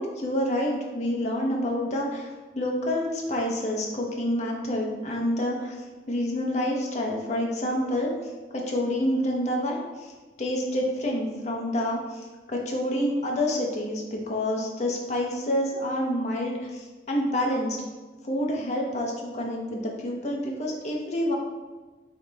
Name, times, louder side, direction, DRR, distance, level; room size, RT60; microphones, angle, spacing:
voice 1, 0.0-5.8 6.1-10.1 10.4-17.8 18.2-21.3, left 1 dB, 40° left, -1 dB, 0.7 m, -28 dB
4.9 x 3.1 x 3.3 m, 1.3 s
head